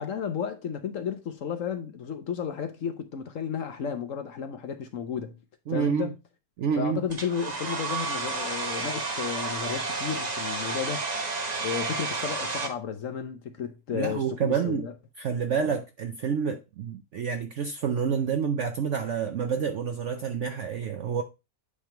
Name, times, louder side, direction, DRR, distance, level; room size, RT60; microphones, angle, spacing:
voice 1, 0.0-5.4 5.7-6.2 6.8-11.0 11.6-14.9, left 7 dB, 55° left, 1.0 m, -33 dB
voice 2, 5.7-6.1 6.6-7.0 13.9-14.9 15.2-21.2, right 6 dB, 65° right, 0.7 m, -28 dB
Domestic sounds home sounds, 7.1-12.7, right 3 dB, 30° right, 0.9 m, -31 dB
8.5 x 3.5 x 4.4 m
omnidirectional pair, 1.8 m